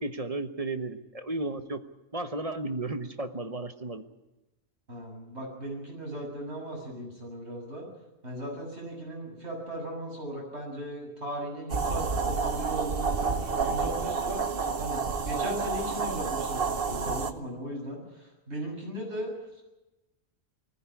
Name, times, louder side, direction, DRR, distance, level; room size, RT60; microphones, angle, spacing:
voice 1, 0.0-1.8 2.1-4.0, right 2 dB, 30° right, 8 dB, 1.3 m, -34 dB
voice 2, 4.9-7.9 8.2-14.4 14.8-19.6, right 1 dB, 70° right, -1 dB, 7.5 m, -37 dB
sound 1, 11.7-17.3, right 4 dB, 55° right, 1.2 m, -29 dB
20.0 x 15.0 x 9.9 m, 1.0 s
omnidirectional pair, 1.2 m